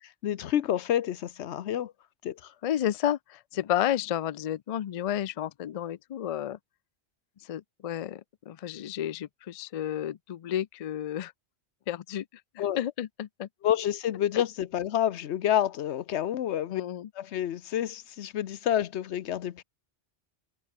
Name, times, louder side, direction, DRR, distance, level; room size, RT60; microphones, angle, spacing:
voice 1, 0.2-1.9 2.2-2.4 12.6-12.8 13.6-16.8 17.2-19.6, left 11 dB, 85° left, 1.0 m, -28 dB
voice 2, 2.6-6.6 7.5-11.3 11.9-12.2 12.6-13.5 14.3-14.4 16.7-17.1, left 11 dB, 60° left, 0.3 m, -31 dB
omnidirectional pair, 1.1 m